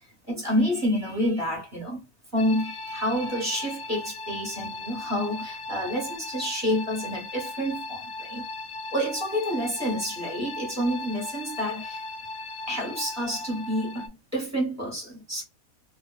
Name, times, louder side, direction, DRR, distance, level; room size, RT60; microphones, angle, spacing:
voice 1, 0.3-2.1 2.3-8.4 8.9-12.0 12.7-15.4, equal, 15° right, 1.0 m, -28 dB
sound 1, 2.4-14.1, left 3 dB, 70° left, 0.9 m, -37 dB
2.4 x 2.3 x 2.3 m
omnidirectional pair, 1.5 m